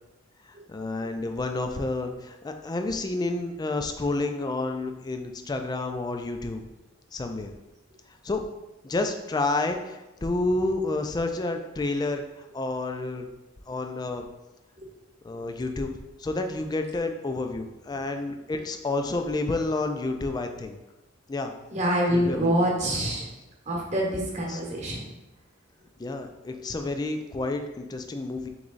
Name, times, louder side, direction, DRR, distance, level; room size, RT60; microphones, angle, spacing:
voice 1, 0.7-6.6 7.1-7.5 8.2-8.4 8.8-13.3 13.7-14.2 15.2-15.9 16.2-20.8 21.3-21.5 22.1-22.5 24.5-24.6 26.0-28.5, left 2 dB, 20° left, 6 dB, 0.3 m, -30 dB
voice 2, 21.7-23.3 23.7-25.0, equal, 35° right, -2 dB, 1.0 m, -26 dB
3.5 x 3.2 x 3.8 m, 1.0 s
head